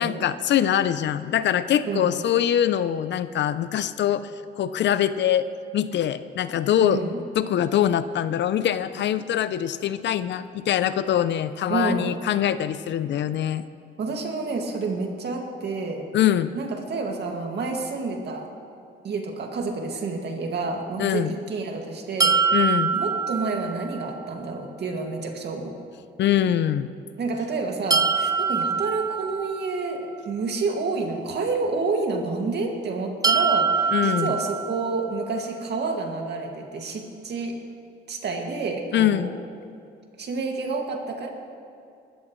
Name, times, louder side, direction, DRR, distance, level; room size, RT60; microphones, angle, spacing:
voice 1, 0.0-4.3 4.6-5.5 5.7-7.0 7.4-13.6 16.1-16.5 21.0-21.3 22.5-23.0 26.2-26.9 33.9-34.3 38.9-39.3, left 10 dB, 65° left, 14 dB, 0.6 m, -23 dB
voice 2, 6.8-7.2 11.7-12.1 14.0-16.1 16.5-18.5 19.0-22.6 22.9-25.8 27.2-37.6 38.1-39.3 40.2-41.3, right 3 dB, 60° right, 2 dB, 2.1 m, -29 dB
sound 1, 22.2-24.2 27.9-30.0 33.2-35.3, right 5 dB, 20° right, 0.3 m, -24 dB
20.0 x 13.5 x 3.2 m, 2.5 s
cardioid pair, 90°, 20 cm